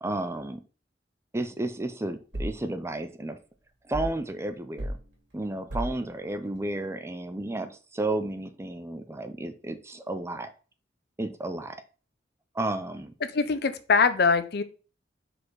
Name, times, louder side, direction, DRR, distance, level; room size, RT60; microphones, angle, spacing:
voice 1, 0.0-0.6 1.3-3.4 3.9-5.0 5.3-10.5 11.2-11.8 12.5-13.1, right 2 dB, 15° right, 9 dB, 0.5 m, -32 dB
sound 1, 2.3-2.7 3.9-4.3 4.8-5.0 5.7-6.0, equal, 90° right, 2.5 m, -33 dB
voice 2, 13.3-14.6, left 5 dB, 60° left, 11 dB, 0.6 m, -23 dB
5.0 x 4.2 x 4.7 m, 0.36 s
head